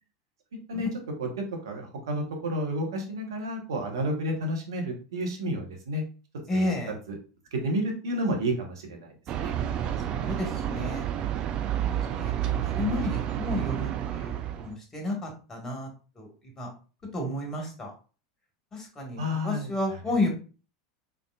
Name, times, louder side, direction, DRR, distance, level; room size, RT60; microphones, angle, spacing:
voice 1, 1.2-6.0 6.5-6.7 7.5-9.1 9.4-9.5 19.2-19.7, equal, 75° right, 2 dB, 1.1 m, -30 dB
voice 2, 6.5-6.9 10.1-11.1 11.8-15.9 16.2-16.3 16.6-16.7 17.1-17.9 18.7-20.3, left 2 dB, 20° left, 1 dB, 1.6 m, -32 dB
sound 1, 9.3-14.7, right 10 dB, 45° right, 0.4 m, -30 dB
3.7 x 3.5 x 2.4 m, 0.36 s
hypercardioid pair, 85°, 2 cm